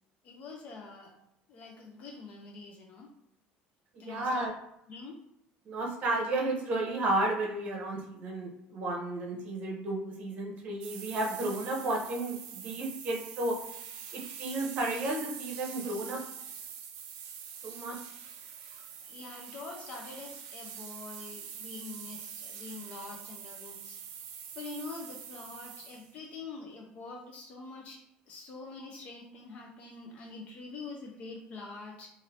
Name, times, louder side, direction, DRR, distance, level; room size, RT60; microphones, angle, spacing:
voice 1, 0.2-1.1 1.5-3.1 4.0-4.5 4.9-5.1 17.6-18.0 19.0-24.0 24.5-28.0 28.3-32.1, left 3 dB, 40° left, 1 dB, 0.5 m, -45 dB
voice 2, 3.9-4.5 5.6-13.6 14.1-16.2 17.6-18.0, right 2 dB, 40° right, 0 dB, 0.7 m, -32 dB
sound 1, 10.8-26.1, right 8 dB, 90° right, 0.5 m, -45 dB
2.6 x 2.5 x 3.2 m, 0.81 s
cardioid pair, 155°, 4 cm